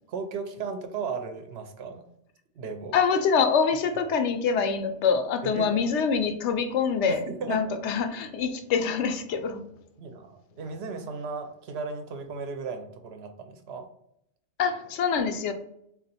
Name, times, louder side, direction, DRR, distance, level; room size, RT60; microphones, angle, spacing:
voice 1, 0.1-2.1 2.6-3.0 5.4-5.8 7.1-7.7 10.0-13.9, right 5 dB, 70° right, 6 dB, 0.8 m, -36 dB
voice 2, 2.9-9.6 14.6-15.5, left 6 dB, 80° left, 7 dB, 0.9 m, -25 dB
3.7 x 2.4 x 4.0 m, 0.75 s
omnidirectional pair, 1.2 m